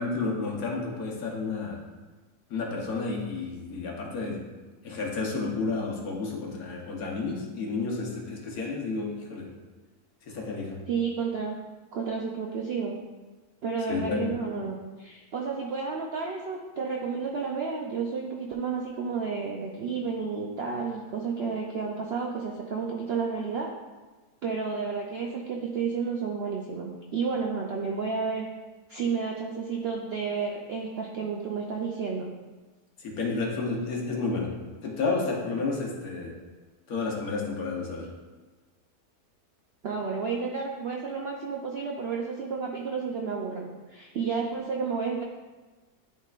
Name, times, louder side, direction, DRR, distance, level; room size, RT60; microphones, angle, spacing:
voice 1, 0.0-1.8 2.5-4.5 4.8-9.5 10.2-10.9 13.9-14.5 33.0-36.4 36.9-38.1, left 3 dB, 65° left, -1 dB, 1.5 m, -31 dB
voice 2, 10.9-11.6 11.9-13.0 13.6-23.7 24.4-28.5 28.9-32.3 39.8-45.2, right 5 dB, 65° right, -1 dB, 0.6 m, -31 dB
11.0 x 3.7 x 2.4 m, 1.3 s
omnidirectional pair, 1.7 m